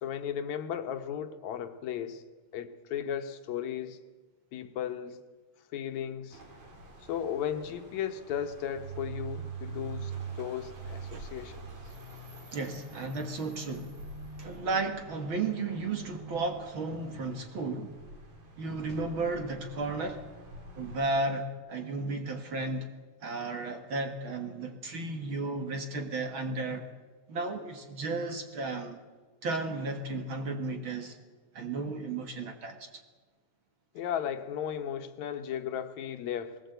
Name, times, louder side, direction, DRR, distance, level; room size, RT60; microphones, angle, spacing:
voice 1, 0.0-2.2 2.5-4.0 4.5-5.2 5.7-6.4 7.0-11.7 33.9-36.5, left 9 dB, 75° left, 2.3 m, -35 dB
sound 1, 6.3-21.0, right 1 dB, 85° right, 5.0 m, -50 dB
sound 2, 8.3-19.8, right 6 dB, 20° right, 1.9 m, -45 dB
voice 2, 12.5-14.0 14.4-17.9 18.6-20.2 20.8-22.9 23.2-26.9 27.3-29.0 29.4-31.2 31.5-32.9, right 3 dB, 50° right, 2.1 m, -34 dB
21.0 x 18.5 x 7.9 m
omnidirectional pair, 3.4 m